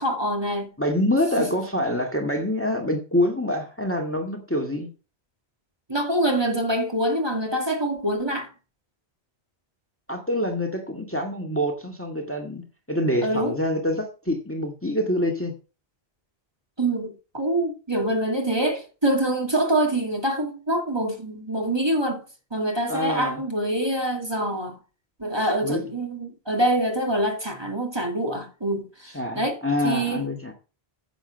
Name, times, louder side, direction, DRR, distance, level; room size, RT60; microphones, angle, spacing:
voice 1, 0.0-0.7 1.4-1.5 5.9-8.5 13.2-13.6 16.8-22.2 22.5-24.8 25.2-30.3, right 1 dB, 25° right, 2.4 m, -25 dB
voice 2, 0.8-4.9 10.1-12.6 12.9-15.5 22.9-23.4 25.6-25.8 29.1-30.5, left 1 dB, 10° left, 1.9 m, -26 dB
10.0 x 8.2 x 5.2 m
omnidirectional pair, 1.1 m